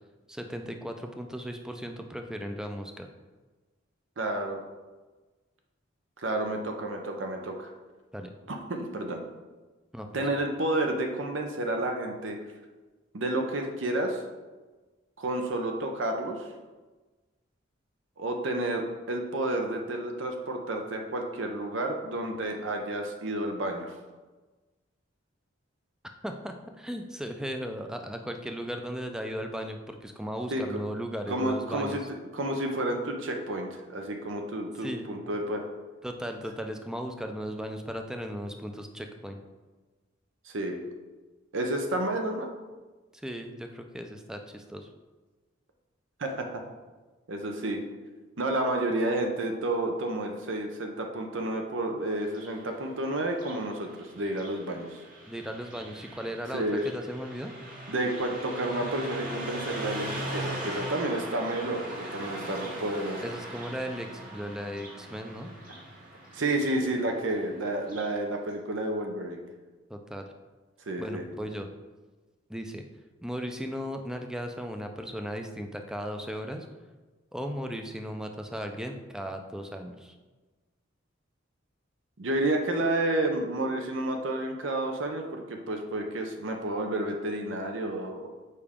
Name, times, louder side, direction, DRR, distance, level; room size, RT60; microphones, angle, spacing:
voice 1, 0.3-3.1 8.1-8.3 9.9-10.3 26.2-32.0 34.8-35.1 36.0-39.4 43.1-44.9 55.3-57.5 63.2-65.5 69.9-70.3 71.0-71.7 72.5-72.8 73.2-76.7 77.3-80.1, equal, 5° right, 4 dB, 0.4 m, -36 dB
voice 2, 4.2-4.6 6.2-7.7 8.5-9.2 10.1-12.4 13.1-14.2 15.2-16.5 18.2-23.9 30.5-30.6 31.3-32.0 32.3-35.6 40.4-40.8 41.5-42.5 46.2-46.6 47.3-47.8 48.4-55.0 56.5-56.9 57.9-63.3 66.3-69.4 70.9-71.2 82.2-88.3, right 1 dB, 70° right, 3 dB, 0.7 m, -30 dB
Car passing by, 52.2-68.2, right 1 dB, 45° right, 1.2 m, -40 dB
Wind instrument woodwind instrument, 60.2-65.1, right 1 dB, 20° right, 0.9 m, -50 dB
6.8 x 4.8 x 3.6 m, 1.3 s
head